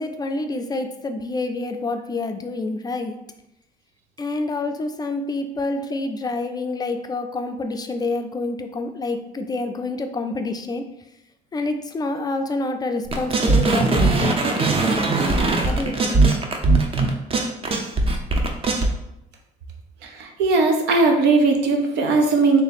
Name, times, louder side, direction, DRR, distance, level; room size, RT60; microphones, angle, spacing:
voice 1, 0.0-3.1 4.2-10.8 11.5-14.7 15.3-15.4 15.6-16.2, left 2 dB, 25° left, 6 dB, 0.4 m, -27 dB
sound 1, 13.1-18.9, right 3 dB, 35° right, 0.6 m, -20 dB
voice 2, 20.0-22.6, right 3 dB, 80° right, 3 dB, 0.8 m, -18 dB
3.3 x 2.8 x 4.1 m, 0.85 s
cardioid pair, 110°, 17 cm